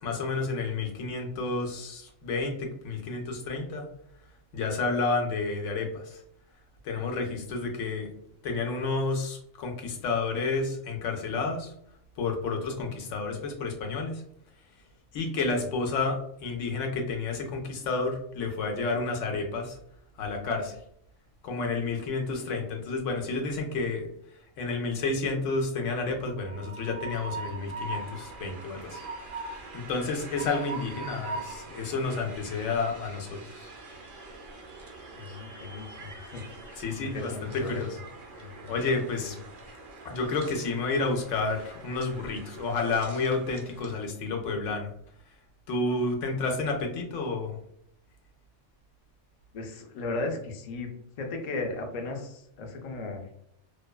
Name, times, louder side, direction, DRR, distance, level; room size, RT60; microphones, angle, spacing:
voice 1, 0.0-3.9 4.5-6.2 6.8-8.1 8.4-11.7 12.2-14.2 15.1-19.8 20.2-20.8 21.4-24.1 24.6-33.7 36.8-38.0 38.4-39.4 40.0-44.9 45.7-47.6, left 3 dB, 85° left, 3 dB, 0.9 m, -30 dB
Train, 26.3-44.1, right 3 dB, 55° right, 0.6 m, -43 dB
voice 2, 35.1-37.8 38.4-38.7 39.2-39.3 39.7-39.8 49.5-50.9 51.2-53.2, left 3 dB, 70° left, 3 dB, 0.4 m, -36 dB
2.5 x 2.2 x 2.2 m, 0.71 s
omnidirectional pair, 1.3 m